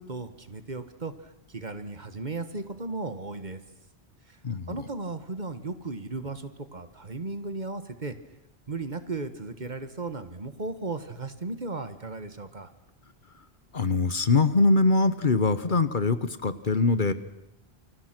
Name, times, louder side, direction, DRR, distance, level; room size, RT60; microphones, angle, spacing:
voice 1, 0.0-3.6 4.3-4.4 4.7-8.1 8.7-12.7, right 3 dB, 45° right, 10 dB, 1.6 m, -36 dB
voice 2, 4.4-4.8 13.7-17.1, left 3 dB, 50° left, 12 dB, 1.3 m, -23 dB
28.5 x 24.0 x 6.1 m, 0.83 s
omnidirectional pair, 1.1 m